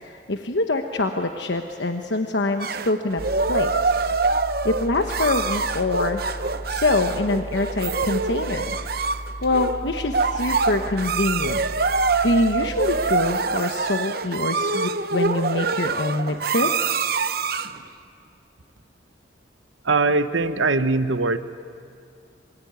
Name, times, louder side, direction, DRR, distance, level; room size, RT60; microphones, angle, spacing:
voice 1, 0.0-3.2 3.5-3.9 4.6-6.2 6.7-8.8 9.4-11.6 12.0-16.8, left 2 dB, 65° left, 5 dB, 1.2 m, -25 dB
sound 1, 2.6-17.8, right 4 dB, 50° right, 0.8 m, -25 dB
sound 2, 3.2-13.1, equal, 85° left, 5.1 m, -36 dB
voice 2, 19.8-21.4, right 3 dB, 85° right, 11 dB, 1.0 m, -21 dB
27.0 x 22.5 x 9.5 m, 2.4 s
head